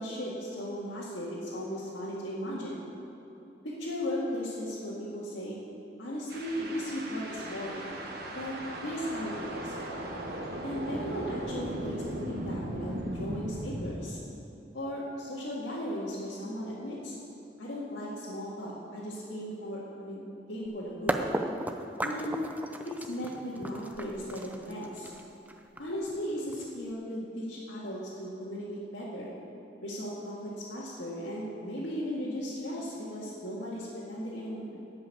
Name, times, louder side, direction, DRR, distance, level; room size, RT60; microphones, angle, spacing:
voice 1, 0.0-2.9 3.6-5.6 6.0-7.9 8.3-8.6 8.8-9.8 10.6-14.2 14.7-17.2 17.6-20.2 20.5-21.2 22.0-22.4 22.8-25.1 25.8-29.3 29.8-34.8, equal, 85° left, -9 dB, 1.9 m, -36 dB
sound 1, 6.3-14.0, right 1 dB, 60° right, 1.4 m, -37 dB
sound 2, 20.7-20.8 21.1-26.9, right 1 dB, 10° right, 0.5 m, -35 dB
12.5 x 5.6 x 8.3 m, 3.0 s
head